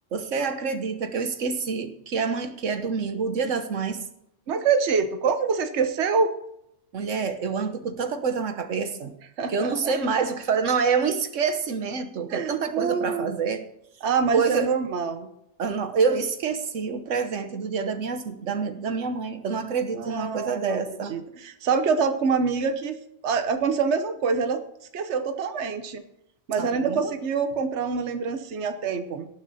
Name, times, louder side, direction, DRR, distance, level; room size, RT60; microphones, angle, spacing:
voice 1, 0.1-4.1 6.9-9.1 9.5-13.7 14.3-14.7 15.6-21.1 26.6-27.1, right 5 dB, 90° right, 8 dB, 1.4 m, -27 dB
voice 2, 4.5-6.3 9.4-9.9 12.3-13.4 14.0-15.3 19.9-20.8 21.1-23.0 23.2-24.6 24.9-26.0 26.5-29.3, right 5 dB, 70° right, 8 dB, 1.3 m, -25 dB
18.5 x 6.7 x 4.2 m, 0.77 s
omnidirectional pair, 1.2 m